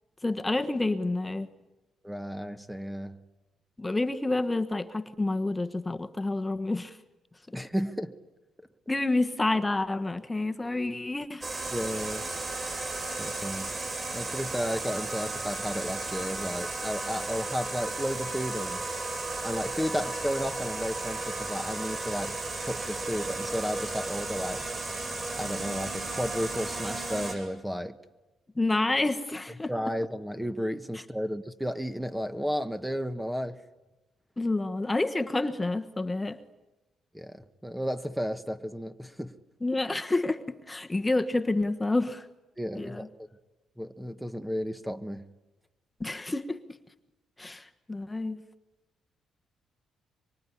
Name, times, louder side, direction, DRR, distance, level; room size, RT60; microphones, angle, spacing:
voice 1, 0.2-1.5 3.8-7.0 8.9-11.5 28.6-29.7 34.4-36.4 39.6-42.3 42.8-43.1 46.0-46.6 47.4-48.4, left 2 dB, 15° left, 1.3 m, -29 dB
voice 2, 2.0-3.2 7.5-8.1 11.7-12.3 13.2-13.7 14.1-18.8 19.4-24.7 25.4-28.0 29.7-33.6 37.1-39.3 42.6-43.1 43.8-45.3, equal, 5° right, 1.3 m, -33 dB
sound 1, 11.4-27.3, right 2 dB, 30° right, 8.0 m, -34 dB
24.5 x 24.0 x 10.0 m
cardioid pair, 90°, 0 cm